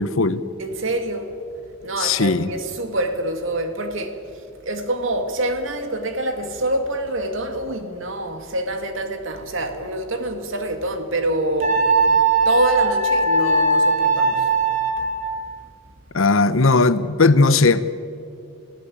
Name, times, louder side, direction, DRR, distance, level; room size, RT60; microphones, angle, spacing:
voice 1, 0.0-0.4 2.0-2.5 16.1-17.9, left 3 dB, 75° left, 1.0 m, -17 dB
voice 2, 0.6-1.4 1.8-14.5 15.0-15.1, right 1 dB, 70° right, 2.4 m, -26 dB
Wind instrument woodwind instrument, 11.6-15.4, right 3 dB, 35° right, 2.7 m, -19 dB
28.0 x 16.0 x 8.6 m
head